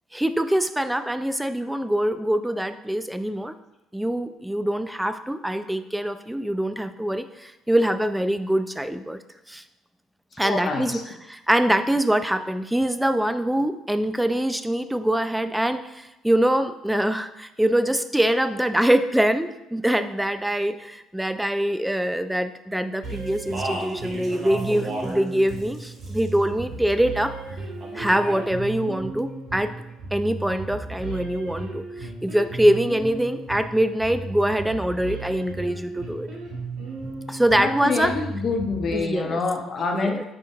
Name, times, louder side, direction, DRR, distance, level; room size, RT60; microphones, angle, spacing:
voice 1, 0.1-3.5 3.9-9.2 9.5-9.6 10.4-27.3 27.9-29.7 30.1-36.3 37.3-38.1 38.9-39.4 39.9-40.2, right 1 dB, 5° right, 10 dB, 0.5 m, -24 dB
voice 2, 10.4-11.0 37.6-40.2, left 4 dB, 45° left, 3 dB, 1.1 m, -26 dB
sound 1, 23.0-39.0, right 3 dB, 65° right, 1.6 m, -35 dB
Speech, 23.3-25.2 25.5-26.4 27.8-28.5, right 1 dB, 45° right, 1.7 m, -34 dB
7.9 x 4.4 x 3.6 m, 0.93 s
hypercardioid pair, 50°, 0 cm